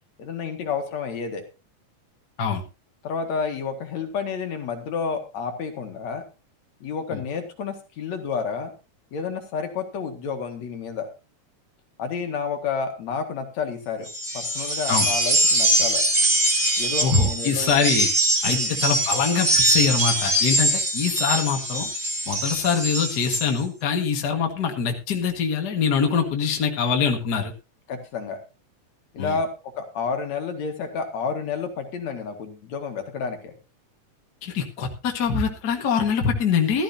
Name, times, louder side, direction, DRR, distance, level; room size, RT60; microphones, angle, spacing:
voice 1, 0.2-1.4 3.0-6.2 6.8-8.7 9.1-11.1 12.0-14.1 14.3-16.0 16.8-17.7 18.4-18.8 27.9-28.4 29.1-29.5 29.8-33.5, left 5 dB, 65° left, 5 dB, 3.0 m, -30 dB
sound 1, 14.1-23.5, right 1 dB, 25° right, 4.1 m, -23 dB
voice 2, 17.0-18.1 18.4-21.9 22.3-27.5 29.2-29.4 34.4-36.8, left 6 dB, 40° left, 3 dB, 1.9 m, -24 dB
15.5 x 13.0 x 2.8 m, 0.29 s
omnidirectional pair, 3.5 m